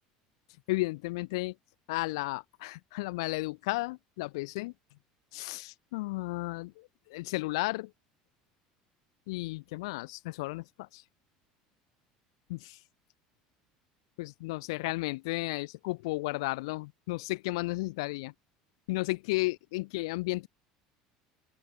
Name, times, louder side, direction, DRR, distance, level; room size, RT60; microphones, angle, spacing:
voice 1, 0.7-1.5 1.9-4.7 5.3-7.9 9.3-11.0 12.5-12.8 14.2-18.3 18.9-20.5, left 22 dB, 85° left, 2.9 m, -33 dB
open air
supercardioid pair, 110°, 3 cm